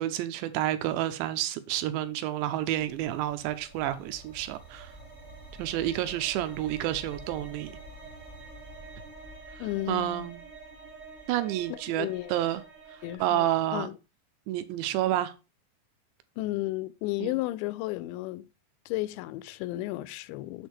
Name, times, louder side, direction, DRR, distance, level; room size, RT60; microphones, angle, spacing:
voice 1, 0.0-4.9 5.6-7.7 9.9-10.4 11.3-12.6 12.9-13.9 14.5-15.3 17.2-17.4, right 13 dB, 90° right, 2.9 m, -29 dB
sound 1, 2.4-13.2, right 2 dB, 35° right, 1.2 m, -47 dB
voice 2, 9.6-10.3 12.0-12.3 13.0-14.0 16.4-18.5 18.9-20.7, left 18 dB, 85° left, 2.8 m, -33 dB
7.3 x 6.3 x 3.3 m
omnidirectional pair, 5.1 m